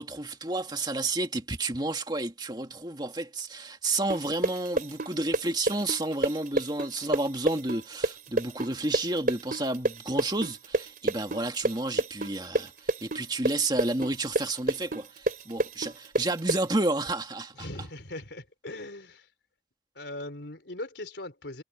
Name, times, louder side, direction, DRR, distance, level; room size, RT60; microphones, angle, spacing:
voice 1, 0.0-17.7, right 2 dB, 25° right, 2.2 m, -31 dB
sound 1, 4.1-11.7 12.0-16.6, right 2 dB, 45° right, 3.6 m, -27 dB
voice 2, 17.5-19.3 20.0-21.6, left 1 dB, 70° left, 3.8 m, -39 dB
head